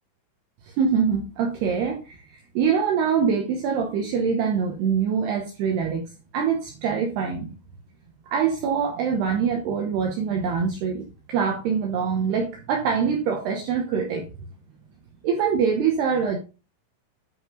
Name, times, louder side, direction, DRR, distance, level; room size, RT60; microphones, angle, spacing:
voice 1, 0.7-6.0 6.3-7.5 8.3-14.3 15.2-16.4, right 6 dB, 75° right, 2 dB, 2.5 m, -24 dB
9.8 x 5.4 x 3.8 m, 0.31 s
omnidirectional pair, 6.0 m